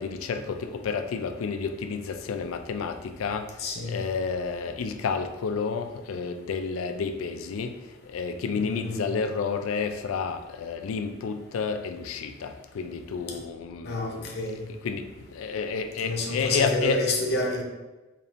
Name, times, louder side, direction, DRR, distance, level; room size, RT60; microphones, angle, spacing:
voice 1, 0.0-3.5 3.8-7.8 8.1-14.3 14.7-17.1, left 5 dB, 85° left, 7 dB, 0.4 m, -30 dB
voice 2, 3.6-4.0 8.6-9.1 13.3-13.4 13.8-14.6 16.0-17.6, left 2 dB, 55° left, -1 dB, 0.7 m, -29 dB
4.3 x 3.4 x 2.5 m, 1.1 s
head